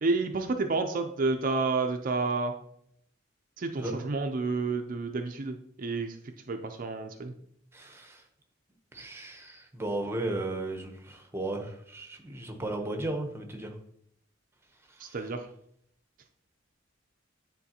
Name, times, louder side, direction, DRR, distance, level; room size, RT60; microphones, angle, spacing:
voice 1, 0.0-2.5 3.6-6.2 6.5-7.3 15.0-15.5, right 3 dB, 45° right, 6 dB, 0.5 m, -30 dB
voice 2, 3.8-4.1 7.7-8.2 8.9-13.7 15.0-15.2, right 2 dB, 10° right, 3 dB, 0.8 m, -35 dB
9.4 x 3.8 x 2.8 m, 0.69 s
head